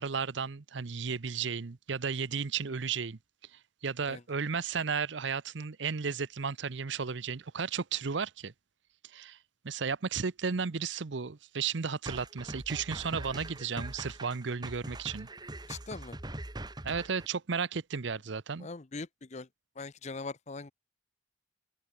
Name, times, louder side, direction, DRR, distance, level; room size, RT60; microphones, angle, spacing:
voice 1, 0.0-3.2 3.5-8.5 9.0-9.4 9.6-15.3 16.8-18.7, right 5 dB, 65° right, 0.7 m, -34 dB
sound 1, 12.1-17.3, right 2 dB, 20° right, 1.6 m, -42 dB
voice 2, 15.7-16.2 18.6-19.5 19.8-20.7, left 3 dB, 35° left, 0.7 m, -41 dB
head